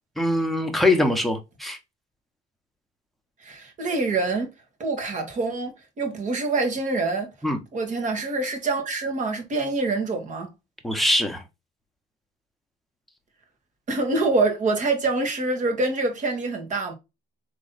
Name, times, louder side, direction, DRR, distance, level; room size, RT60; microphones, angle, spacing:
voice 1, 0.2-1.8 7.4-7.6 10.8-11.4, left 1 dB, ahead, 1.0 m, -22 dB
voice 2, 3.4-4.5 4.8-7.3 7.7-10.5 13.9-16.9, right 3 dB, 45° right, 1.6 m, -25 dB
4.1 x 3.1 x 4.0 m
cardioid pair, 110°, 17 cm